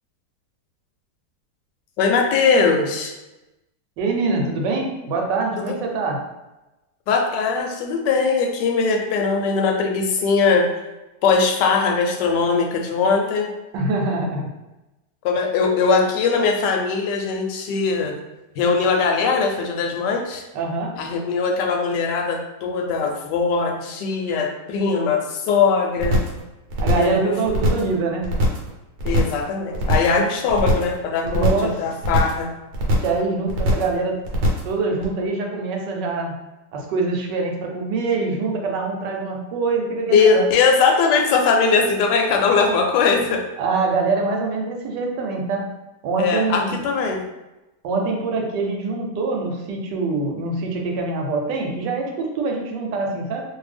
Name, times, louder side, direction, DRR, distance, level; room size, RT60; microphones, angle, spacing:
voice 1, 2.0-3.1 5.6-5.8 7.1-10.7 11.2-13.5 15.2-18.1 18.6-20.4 21.0-26.2 26.8-27.3 29.0-32.5 40.1-43.4 46.2-47.2, left 5 dB, 80° left, 2 dB, 1.2 m, -20 dB
voice 2, 4.0-6.2 13.7-14.5 20.5-20.9 26.8-28.3 31.2-31.8 33.0-34.2 34.6-36.3 36.7-40.4 43.6-45.7 46.0-46.8 47.8-53.4, right 3 dB, 85° right, 1 dB, 1.3 m, -24 dB
sound 1, 26.0-26.4 26.7-27.2 27.5-27.9 28.2-28.7 29.0-29.4 29.7-30.2 30.5-31.0 31.3-31.7 32.0-32.4 32.7-33.2 33.5-33.9 34.2-34.7 35.0-35.1, equal, 70° right, 1.1 m, -21 dB
2.6 x 2.6 x 3.3 m, 1.0 s
omnidirectional pair, 1.8 m